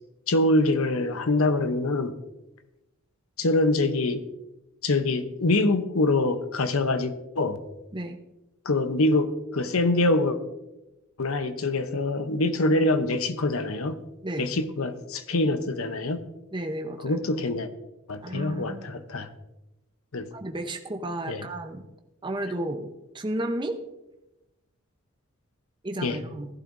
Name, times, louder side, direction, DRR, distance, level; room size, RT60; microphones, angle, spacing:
voice 1, 0.3-2.1 3.4-4.2 4.8-7.6 8.6-10.4 11.2-14.0 14.4-16.2 17.0-17.7 18.1-19.3 20.1-20.3 21.3-21.4 26.0-26.2, left 2 dB, 75° left, 10 dB, 0.8 m, -24 dB
voice 2, 16.5-17.2 18.2-18.8 20.3-21.8 22.2-22.9 23.1-23.8 25.8-26.5, right 1 dB, 20° right, 5 dB, 0.8 m, -32 dB
16.0 x 11.5 x 2.6 m, 0.96 s
head